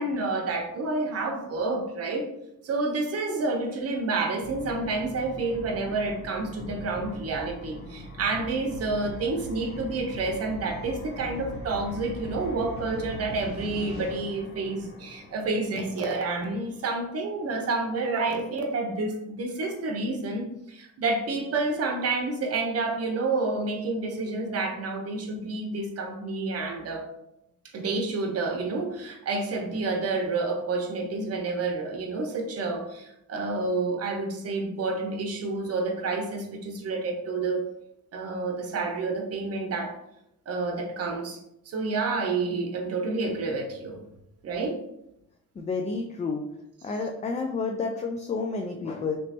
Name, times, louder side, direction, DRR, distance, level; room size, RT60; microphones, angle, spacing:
voice 1, 0.0-2.3 2.6-27.0 27.7-37.7 38.1-39.9 40.5-41.4 41.7-44.0 44.4-44.8, right 3 dB, 55° right, 3 dB, 0.8 m, -29 dB
sound 1, 4.4-17.2, equal, 45° left, 1.4 m, -41 dB
voice 2, 45.6-46.4 46.8-49.2, left 4 dB, 25° left, 3 dB, 0.3 m, -30 dB
3.1 x 3.0 x 2.8 m, 0.81 s
cardioid pair, 90°, 30 cm